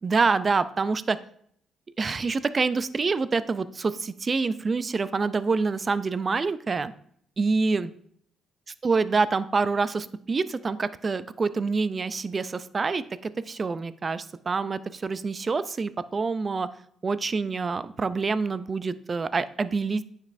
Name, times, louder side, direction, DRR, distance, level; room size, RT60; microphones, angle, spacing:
voice 1, 0.0-1.2 2.0-6.9 7.4-7.9 8.8-16.7 17.0-20.0, right 4 dB, 35° right, 15 dB, 0.4 m, -26 dB
9.3 x 5.3 x 2.6 m, 0.65 s
cardioid pair, 90°, 0 cm